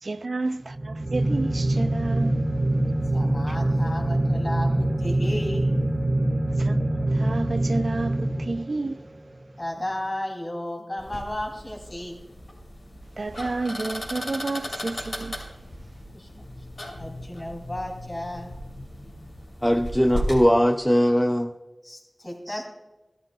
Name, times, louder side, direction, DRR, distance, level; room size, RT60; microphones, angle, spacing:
voice 1, 0.0-2.4 6.6-9.0 13.2-15.3, right 3 dB, 70° right, 0.3 m, -30 dB
sound 1, 0.7-9.0, right 1 dB, 40° right, 1.3 m, -24 dB
voice 2, 3.1-5.7 9.6-12.2 16.1-16.4 17.0-18.5 21.8-22.7, left 1 dB, 40° left, 2.8 m, -34 dB
sound 2, 11.0-20.4, equal, 75° left, 3.2 m, -36 dB
voice 3, 19.6-21.5 22.5-22.6, equal, 5° left, 0.5 m, -20 dB
16.0 x 12.5 x 2.3 m
wide cardioid pair, 45°, 0 cm